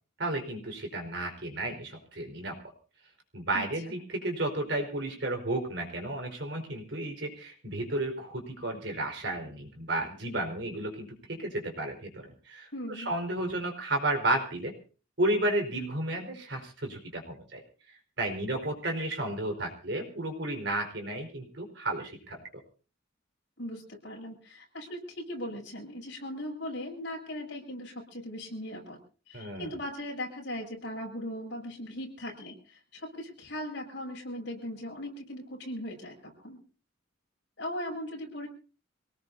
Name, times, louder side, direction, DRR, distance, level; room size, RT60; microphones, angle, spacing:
voice 1, 0.2-2.6 3.3-14.7 15.2-17.6 17.9-22.4 29.3-29.7, right 1 dB, 60° right, 3 dB, 4.6 m, -33 dB
voice 2, 3.5-3.9 12.7-13.1 23.6-29.0 29.3-36.6 37.6-38.5, left 1 dB, 60° left, 1 dB, 7.6 m, -39 dB
26.5 x 18.5 x 2.8 m, 0.38 s
head